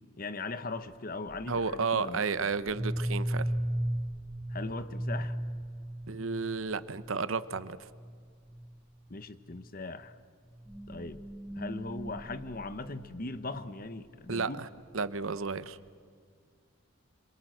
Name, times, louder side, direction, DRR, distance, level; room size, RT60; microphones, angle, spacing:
voice 1, 0.2-2.2 4.5-5.4 9.1-10.1 10.9-11.2 11.6-14.6, left 3 dB, 40° left, 12 dB, 1.0 m, -39 dB
sound 1, 1.3-1.7 2.6-7.1 7.5-7.6 7.9-8.2 8.5-8.8 9.5-9.6 10.5-13.7, right 1 dB, ahead, 0.6 m, -36 dB
voice 2, 1.5-3.5 6.1-7.9 14.3-14.7 14.9-15.8, right 4 dB, 70° right, 15 dB, 0.8 m, -32 dB
26.5 x 23.0 x 7.9 m, 2.1 s
head